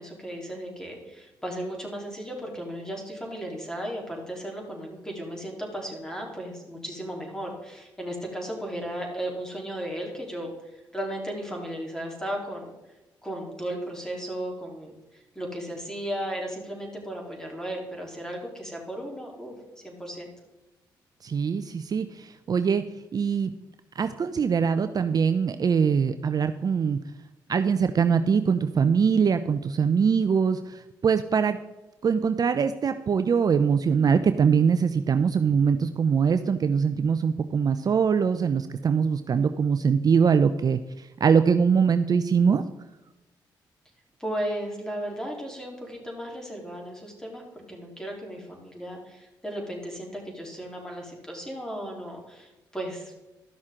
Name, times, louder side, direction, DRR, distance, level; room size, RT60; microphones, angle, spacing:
voice 1, 0.0-12.7 13.2-19.6 19.8-20.3 44.2-47.4 47.7-53.1, right 1 dB, 5° left, 0 dB, 3.5 m, -35 dB
voice 2, 21.2-22.8 23.1-23.5 24.0-27.0 27.5-31.6 32.0-42.6, right 6 dB, 45° right, 10 dB, 0.5 m, -23 dB
13.5 x 6.2 x 3.7 m, 1.0 s
supercardioid pair, 60°, 9 cm